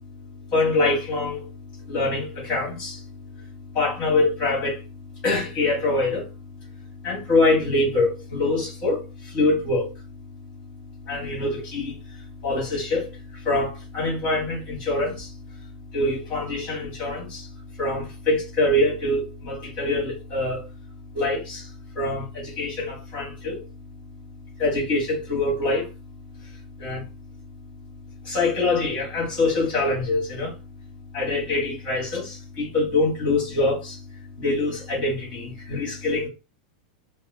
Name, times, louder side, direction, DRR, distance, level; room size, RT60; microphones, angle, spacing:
voice 1, 0.5-1.5 1.9-3.0 3.7-4.8 5.2-6.3 7.0-9.9 11.1-12.0 12.4-15.3 15.9-17.5 17.8-20.7 21.1-21.7 21.9-23.7 24.6-25.9 26.8-27.0 28.2-30.5 31.1-34.0 34.4-36.3, left 2 dB, 25° left, 2.2 m, -24 dB
4.8 x 2.1 x 2.6 m
supercardioid pair, 175°, 4 cm